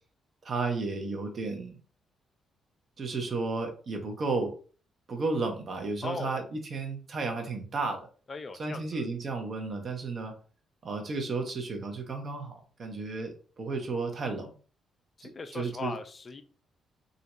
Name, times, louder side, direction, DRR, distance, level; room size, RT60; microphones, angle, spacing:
voice 1, 0.4-1.8 3.0-4.5 5.1-8.1 8.6-10.3 10.8-14.5 15.2-15.9, right 3 dB, 50° right, 2 dB, 0.8 m, -33 dB
voice 2, 6.0-6.4 8.3-9.0 15.2-16.4, left 3 dB, 40° left, 8 dB, 0.4 m, -38 dB
2.5 x 2.1 x 3.0 m, 0.39 s
hypercardioid pair, 40°, 0 cm